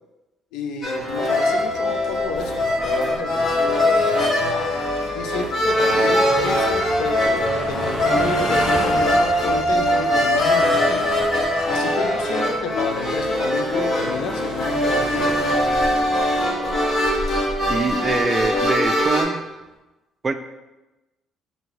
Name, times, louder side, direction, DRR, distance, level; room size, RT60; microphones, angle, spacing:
voice 1, 0.5-4.8 5.1-11.1 11.7-15.3, left 5 dB, 85° left, 6 dB, 0.5 m, -30 dB
sound 1, 0.8-19.2, left 1 dB, 40° left, 1.1 m, -21 dB
sound 2, 1.0-19.1, left 1 dB, 70° left, 1.2 m, -35 dB
voice 2, 17.7-19.4 20.2-20.3, right 3 dB, 25° right, 9 dB, 0.3 m, -23 dB
4.5 x 2.7 x 4.0 m, 1.0 s
cardioid pair, 120°, 0 cm